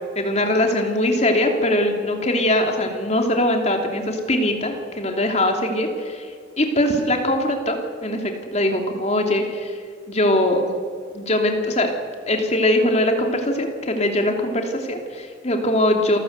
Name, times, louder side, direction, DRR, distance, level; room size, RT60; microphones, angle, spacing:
voice 1, 0.1-6.3 6.6-9.8 10.1-10.6 11.1-11.9 12.3-16.2, left 1 dB, 35° left, 3 dB, 2.9 m, -21 dB
27.5 x 14.5 x 8.0 m, 2.3 s
head